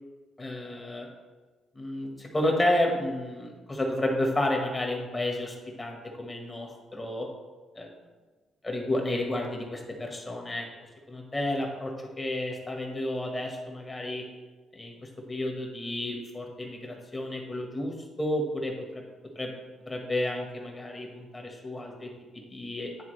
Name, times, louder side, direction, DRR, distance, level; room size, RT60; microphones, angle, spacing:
voice 1, 0.4-1.1 1.7-7.3 7.7-7.9 8.6-10.6 11.1-11.9 12.2-14.2 14.7-14.9 15.3-19.0 19.3-19.5 19.9-22.1 22.5-22.9, left 1 dB, 20° left, 1 dB, 1.4 m, -31 dB
9.7 x 3.5 x 3.3 m, 1.3 s
cardioid pair, 90°, 0 cm